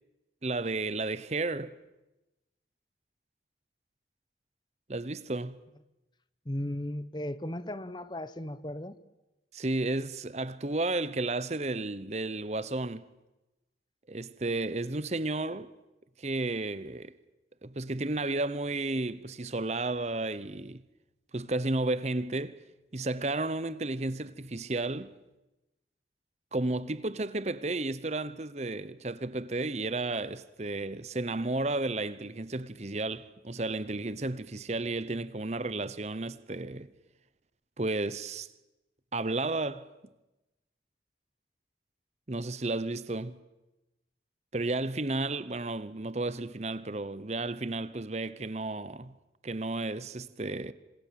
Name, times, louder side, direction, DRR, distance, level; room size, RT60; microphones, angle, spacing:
voice 1, 0.4-1.8 4.9-5.6 9.5-13.0 14.1-15.7 16.2-17.1 17.6-20.8 21.3-22.6 22.9-25.1 26.5-36.9 37.8-38.5 39.1-39.9 42.3-43.4 44.5-49.1 49.4-50.7, right 2 dB, 40° right, 0.9 m, -32 dB
voice 2, 6.5-9.0, left 1 dB, 25° left, 0.9 m, -36 dB
27.5 x 26.5 x 7.6 m
head